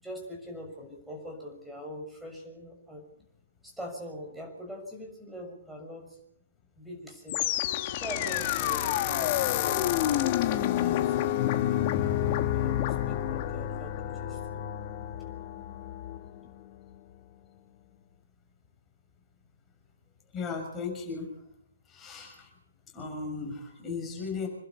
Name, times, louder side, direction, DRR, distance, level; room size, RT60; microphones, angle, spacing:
voice 1, 0.0-3.1 3.6-6.2 6.7-7.5 7.9-11.4 12.5-14.0 14.2-14.7, equal, 5° right, 1 dB, 6.4 m, -43 dB
sound 1, 7.3-16.4, left 12 dB, 35° left, 1.2 m, -29 dB
voice 2, 20.3-21.3 21.9-22.5 22.9-24.5, left 4 dB, 15° left, 0 dB, 6.4 m, -36 dB
27.5 x 11.5 x 8.4 m, 0.69 s
figure-of-eight pair, 125°, 0 cm